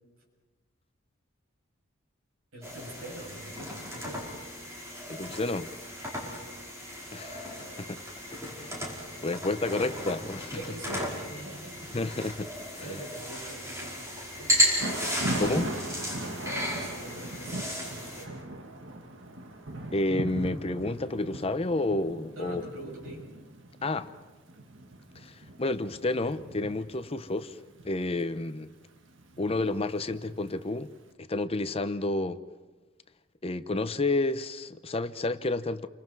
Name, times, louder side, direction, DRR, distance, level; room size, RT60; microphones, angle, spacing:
voice 1, 2.5-4.3 6.2-6.4 10.5-12.0 12.8-14.7 16.4-18.5 22.3-23.3, right 1 dB, 80° right, 7.7 m, -44 dB
sound 1, 2.6-18.2, equal, 15° right, 5.0 m, -34 dB
voice 2, 5.1-5.7 7.1-8.0 8.3-8.8 9.2-10.5 11.9-13.0 15.4-15.7 19.9-22.6 23.8-24.1 25.2-27.6 27.8-28.7 29.4-30.9 31.3-32.4 33.4-35.9, left 2 dB, 30° left, 0.7 m, -30 dB
Thunder / Rain, 14.8-30.8, right 1 dB, 65° right, 1.6 m, -40 dB
30.0 x 24.5 x 4.8 m
head